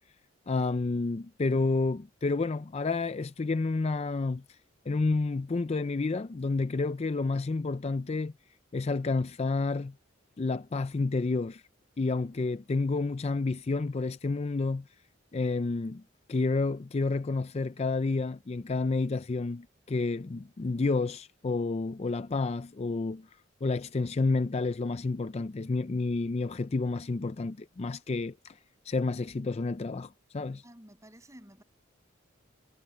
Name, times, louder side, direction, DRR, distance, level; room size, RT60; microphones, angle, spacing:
voice 1, 0.5-4.4 4.9-8.3 8.7-9.9 10.4-11.6 12.0-14.8 15.3-16.0 16.3-23.3 23.6-28.6 28.8-30.6, left 3 dB, 30° left, 0.4 m, -30 dB
voice 2, 30.6-31.6, equal, 15° right, 7.0 m, -52 dB
head